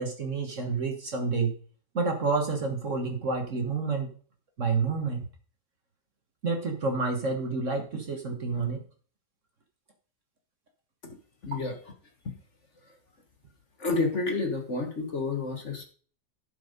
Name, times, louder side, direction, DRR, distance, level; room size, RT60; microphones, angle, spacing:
voice 1, 0.0-1.5 1.9-4.1 4.6-5.2 6.4-8.8, right 4 dB, 45° right, 4 dB, 1.5 m, -29 dB
voice 2, 11.4-11.8 12.2-12.3 12.8-13.0 13.8-15.8, left 3 dB, 40° left, 4 dB, 1.5 m, -30 dB
11.5 x 5.4 x 5.1 m, 0.43 s
omnidirectional pair, 2.0 m